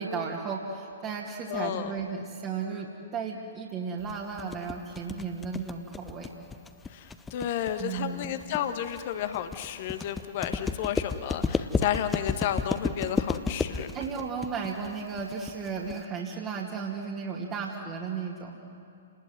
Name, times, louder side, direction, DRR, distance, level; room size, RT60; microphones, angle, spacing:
voice 1, 0.0-6.3 7.8-8.4 13.9-18.6, right 5 dB, 25° right, -2 dB, 2.4 m, -34 dB
voice 2, 1.5-1.9 6.9-13.9, left 10 dB, 45° left, 8 dB, 1.4 m, -32 dB
sound 1, 4.1-16.1, left 4 dB, 10° left, 0.9 m, -32 dB
30.0 x 20.0 x 9.4 m, 2.7 s
figure-of-eight pair, 115°, 0 cm